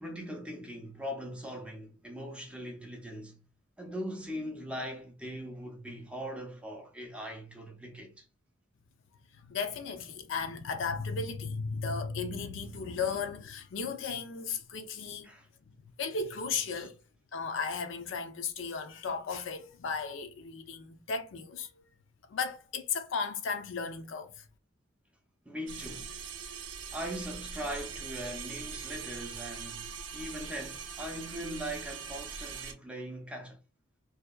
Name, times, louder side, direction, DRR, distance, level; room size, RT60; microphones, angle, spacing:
voice 1, 0.0-3.4 3.8-8.3 15.2-15.5 25.5-26.2 26.9-33.6, equal, 5° right, 0.4 m, -40 dB
voice 2, 9.4-15.3 15.6-17.0 17.3-21.8 22.3-24.4, left 5 dB, 75° left, 0.4 m, -35 dB
sound 1, 25.7-32.7, right 6 dB, 70° right, 0.5 m, -42 dB
2.7 x 2.2 x 2.3 m
head